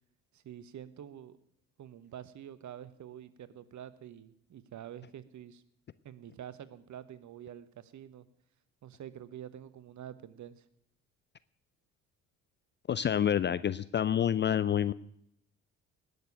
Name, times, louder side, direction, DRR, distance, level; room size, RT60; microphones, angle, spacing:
voice 1, 0.3-1.4 1.8-5.6 6.0-8.3 8.8-10.6, right 10 dB, 45° right, 15 dB, 1.3 m, -47 dB
voice 2, 12.9-14.9, left 9 dB, 25° left, 17 dB, 0.5 m, -28 dB
19.0 x 6.9 x 9.5 m, 0.71 s
figure-of-eight pair, 50°, 42 cm